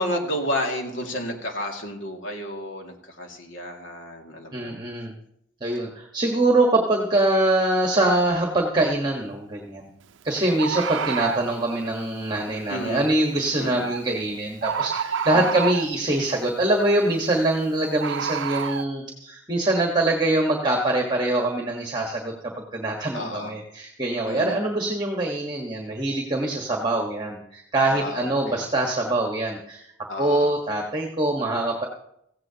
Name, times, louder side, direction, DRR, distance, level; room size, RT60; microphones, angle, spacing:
voice 1, 0.0-4.8 12.7-13.0 13.6-13.8 15.3-15.6 23.1-23.5 24.3-24.6 27.9-28.6 30.1-30.5, left 1 dB, 80° left, 2 dB, 2.2 m, -31 dB
voice 2, 4.5-5.1 5.6-9.9 10.2-29.9 30.2-31.8, right 2 dB, 25° right, 0 dB, 1.3 m, -24 dB
Bird, 8.9-9.0 10.6-11.5 13.8-14.0 14.6-16.0 18.0-18.8, right 7 dB, 75° right, 0.5 m, -28 dB
17.0 x 15.5 x 2.9 m, 0.77 s
head